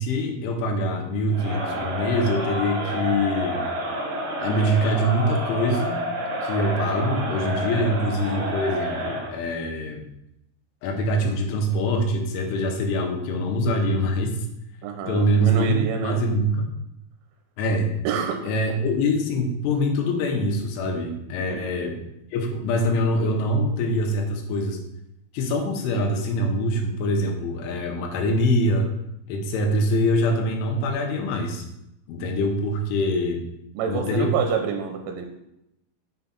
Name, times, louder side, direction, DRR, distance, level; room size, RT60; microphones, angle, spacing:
voice 1, 0.0-3.6 4.4-6.0 6.4-10.0 10.8-14.4 15.1-16.7 17.6-17.9 18.4-21.9 22.3-24.8 25.3-28.9 29.3-31.6 32.1-33.4 33.9-34.3, equal, 85° left, 3 dB, 3.4 m, -24 dB
Crowd, 1.3-9.4, equal, 65° right, 4.0 m, -29 dB
voice 2, 14.8-16.2 18.0-18.4 21.5-21.7 33.8-35.3, right 7 dB, 85° right, 4 dB, 3.2 m, -27 dB
7.1 x 6.7 x 4.0 m, 0.83 s
omnidirectional pair, 5.7 m